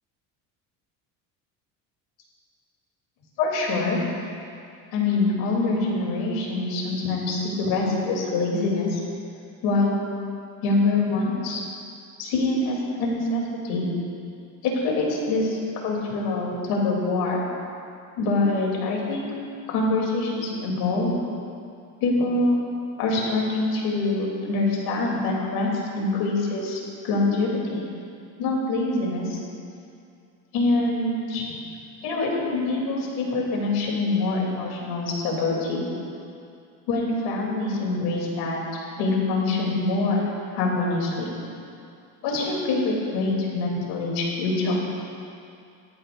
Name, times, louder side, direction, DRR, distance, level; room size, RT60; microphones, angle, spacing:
voice 1, 3.4-4.0 4.9-9.0 9.6-10.0 10.6-11.6 12.2-13.9 14.6-17.4 18.2-19.3 19.7-21.1 22.0-22.5 23.0-27.8 28.4-29.4 30.5-31.5 32.0-35.8 36.9-38.6 39.0-40.3 40.5-41.3 42.2-44.7, left 2 dB, 75° left, -2 dB, 3.5 m, -25 dB
18.0 x 13.0 x 2.7 m, 2.5 s
cardioid pair, 135°, 38 cm